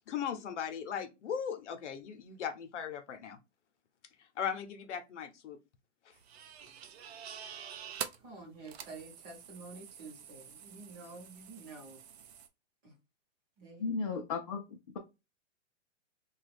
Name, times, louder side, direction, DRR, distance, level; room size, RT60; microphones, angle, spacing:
voice 1, 0.1-3.4 4.4-5.6, left 8 dB, 75° left, 0.8 m, -38 dB
sound 1, 6.1-12.5, right 8 dB, 60° right, 0.6 m, -47 dB
voice 2, 8.2-12.0 12.8-12.9 13.6-14.0, right 3 dB, 20° right, 0.8 m, -49 dB
voice 3, 13.8-15.0, left 4 dB, 35° left, 0.4 m, -35 dB
3.0 x 2.3 x 3.3 m
hypercardioid pair, 155°, 36 cm